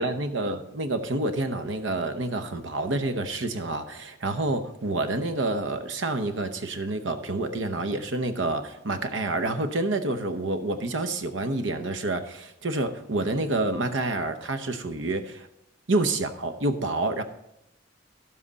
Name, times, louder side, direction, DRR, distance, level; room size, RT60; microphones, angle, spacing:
voice 1, 0.0-15.5 15.9-17.2, right 2 dB, 80° right, 8 dB, 0.9 m, -28 dB
11.5 x 7.6 x 4.0 m, 0.86 s
head